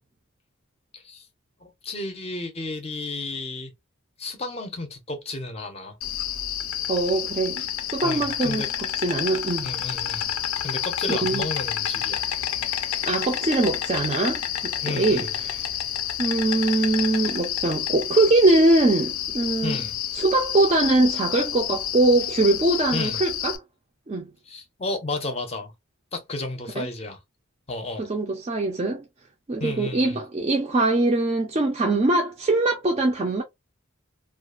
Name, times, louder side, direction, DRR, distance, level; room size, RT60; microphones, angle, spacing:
voice 1, 0.9-1.3 1.6-3.7 4.2-6.0 8.0-8.7 9.6-10.3 10.6-12.3 14.8-15.3 19.6-20.0 22.9-23.2 24.5-25.7 26.1-27.2 27.7-28.1 29.6-30.2, left 2 dB, 30° left, 0.5 m, -32 dB
Insect, 6.0-23.6, left 10 dB, 80° left, 0.4 m, -29 dB
voice 2, 6.9-9.7 11.1-11.5 13.0-15.6 16.2-19.8 20.1-23.6 24.1-24.3 26.8-26.9 28.0-29.0 29.5-33.4, right 2 dB, 30° right, 0.3 m, -22 dB
2.3 x 2.3 x 2.3 m
head